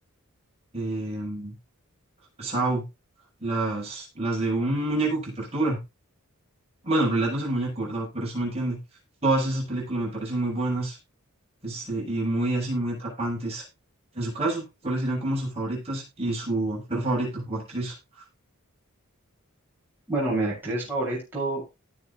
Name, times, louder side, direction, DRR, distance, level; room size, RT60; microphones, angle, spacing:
voice 1, 0.7-1.5 2.4-2.8 3.4-5.8 6.8-8.8 9.2-11.0 11.6-13.6 14.1-17.9, right 2 dB, 30° right, -3 dB, 7.5 m, -27 dB
voice 2, 20.1-21.6, right 2 dB, 10° right, -6 dB, 7.3 m, -27 dB
18.5 x 7.6 x 2.5 m, 0.26 s
head